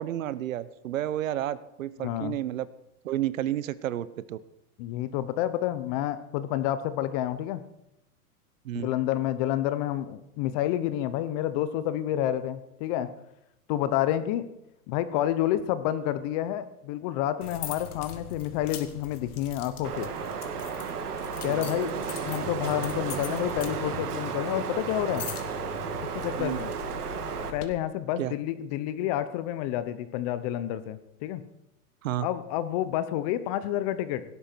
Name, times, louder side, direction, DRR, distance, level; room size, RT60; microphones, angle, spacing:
voice 1, 0.0-2.7 3.0-4.4 8.6-8.9 21.5-21.7 26.3-26.6 28.2-28.3 32.0-32.3, right 12 dB, 60° right, 17 dB, 1.0 m, -31 dB
voice 2, 2.0-2.4 4.8-7.6 8.7-13.1 13.7-14.5 14.9-20.1 21.4-21.9 22.2-25.3 26.0-26.7 27.5-31.4 32.2-34.2, left 12 dB, 25° left, 13 dB, 0.8 m, -29 dB
sound 1, 17.4-27.7, left 7 dB, 75° left, 2.5 m, -41 dB
Wind, 19.8-27.5, right 6 dB, 80° right, 2.3 m, -33 dB
17.5 x 12.5 x 4.5 m, 0.83 s
hypercardioid pair, 150°, 45 cm